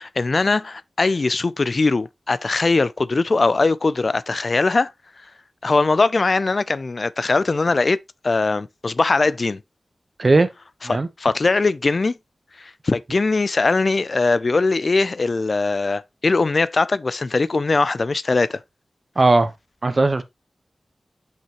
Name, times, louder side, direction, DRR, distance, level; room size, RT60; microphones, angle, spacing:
voice 1, 0.0-4.9 5.6-8.0 8.2-9.6 10.8-12.2 12.6-18.6, left 3 dB, 55° left, 0.4 m, -20 dB
voice 2, 19.2-19.5 19.8-20.2, right 2 dB, 45° right, 1.0 m, -17 dB
5.8 x 5.6 x 3.0 m
wide cardioid pair, 70°, 0 cm